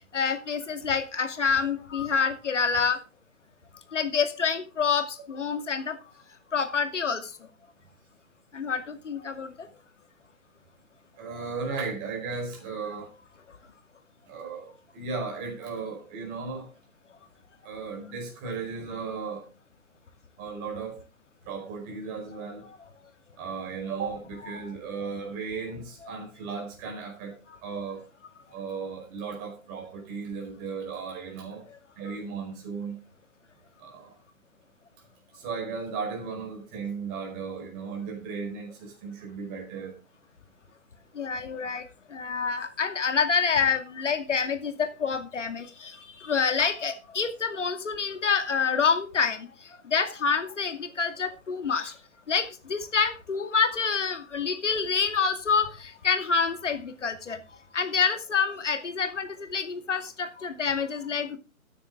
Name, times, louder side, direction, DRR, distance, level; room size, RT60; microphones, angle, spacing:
voice 1, 0.1-3.0 3.9-6.0 6.5-7.2 8.5-9.5 41.2-41.8 42.1-49.5 49.9-51.9 52.3-57.4 57.7-61.4, left 5 dB, 60° left, 8 dB, 2.4 m, -27 dB
voice 2, 11.2-13.1 14.3-16.7 17.6-19.5 20.4-21.0 21.4-22.7 23.4-28.1 28.5-31.6 32.0-33.0 33.8-34.1 35.3-39.9, right 5 dB, 20° right, 1 dB, 4.8 m, -36 dB
14.0 x 9.8 x 3.7 m, 0.30 s
figure-of-eight pair, 135°, 42 cm